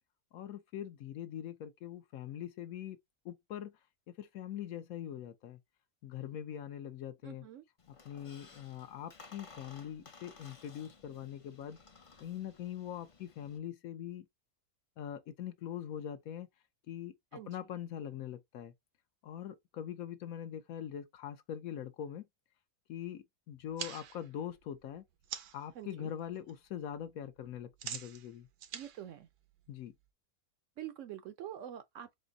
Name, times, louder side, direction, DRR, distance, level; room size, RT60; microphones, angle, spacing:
voice 1, 0.3-3.0 3.2-3.7 4.1-5.6 6.0-7.4 8.0-11.8 12.2-14.2 15.0-16.5 16.9-17.1 17.5-18.7 19.2-22.3 22.9-25.0 25.5-28.5 29.7-29.9, left 10 dB, 70° left, 1.1 m, -42 dB
voice 2, 7.2-7.6 17.3-17.6 25.7-26.1 28.7-29.3 30.8-32.2, right 11 dB, 65° right, 0.8 m, -46 dB
Squeak, 7.8-13.6, left 4 dB, 40° left, 0.4 m, -57 dB
sound 1, 23.5-25.7 26.1-26.5 26.8-30.1, right 9 dB, 85° right, 1.2 m, -46 dB
4.4 x 2.6 x 3.9 m
omnidirectional pair, 1.6 m